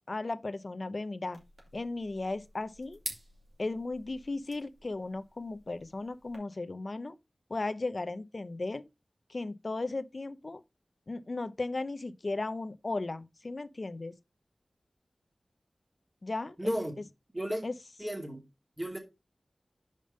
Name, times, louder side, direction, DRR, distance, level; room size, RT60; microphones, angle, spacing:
voice 1, 0.1-1.4 1.7-3.0 3.6-7.2 7.5-8.8 9.3-10.6 11.1-14.1 16.2-16.7 17.6-17.7, left 2 dB, 55° left, 0.6 m, -36 dB
sound 1, 1.3-6.4, right 2 dB, 65° right, 2.6 m, -48 dB
voice 2, 16.6-16.9 17.3-17.6 18.0-18.4 18.8-19.0, equal, 20° right, 2.5 m, -33 dB
5.2 x 5.1 x 5.3 m
wide cardioid pair, 60°, 0 cm